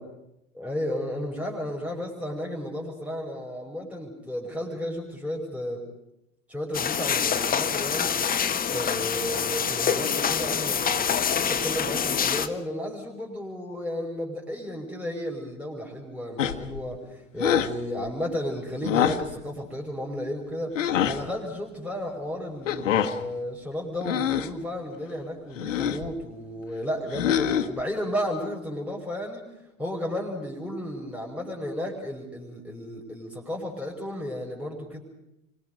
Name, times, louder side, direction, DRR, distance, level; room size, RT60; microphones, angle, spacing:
voice 1, 0.6-5.8 6.5-20.8 21.1-29.5 29.8-35.0, equal, 5° right, -1 dB, 5.5 m, -33 dB
sound 1, 6.7-12.5, left 7 dB, 20° left, 1.5 m, -26 dB
sound 2, 16.4-16.8 17.4-17.8 18.8-19.3 20.8-21.2 22.7-23.2 24.0-24.6 25.6-26.1 27.1-27.8, left 9 dB, 70° left, 1.5 m, -25 dB
29.5 x 24.0 x 5.3 m, 0.87 s
figure-of-eight pair, 70°, 40 cm